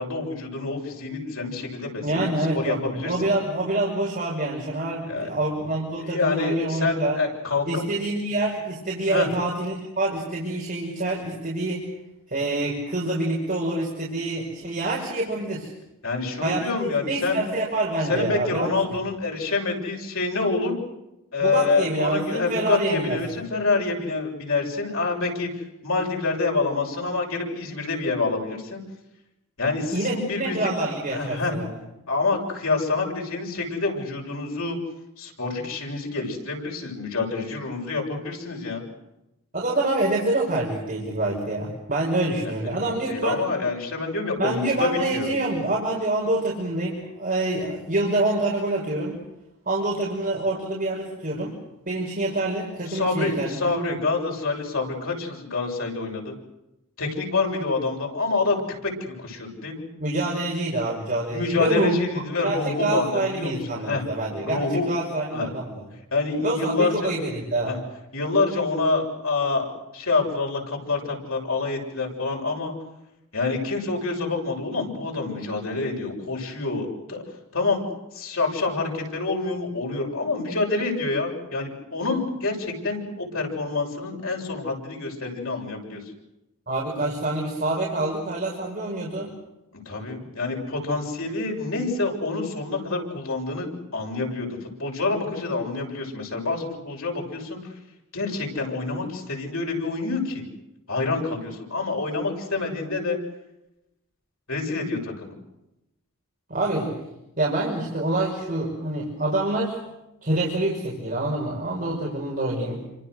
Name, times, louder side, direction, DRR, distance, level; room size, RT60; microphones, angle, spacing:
voice 1, 0.0-2.3 2.5-3.2 5.1-5.3 6.1-7.8 9.1-9.3 16.0-17.4 18.1-20.7 21.3-25.5 25.8-28.8 29.6-30.7 31.1-31.5 32.1-34.8 35.2-38.8 42.8-45.3 52.9-56.4 57.0-59.9 61.3-64.0 64.4-64.9 65.3-65.5 66.1-67.1 67.7-67.8 68.1-72.7 73.3-77.2 77.5-77.8 78.1-86.0 89.9-97.6 98.1-100.4 100.9-103.2 104.5-105.3, left 3 dB, 70° left, 0 dB, 7.3 m, -27 dB
voice 2, 2.0-7.2 7.7-11.9 12.3-15.7 16.4-18.8 21.4-23.2 29.9-31.8 39.5-43.4 44.4-49.2 49.7-51.5 51.9-53.9 60.0-62.0 62.4-65.8 66.4-67.7 86.7-89.3 106.5-106.9 107.4-109.8 110.2-112.8, right 2 dB, 40° right, -3 dB, 5.7 m, -26 dB
29.5 x 26.5 x 6.6 m, 0.90 s
head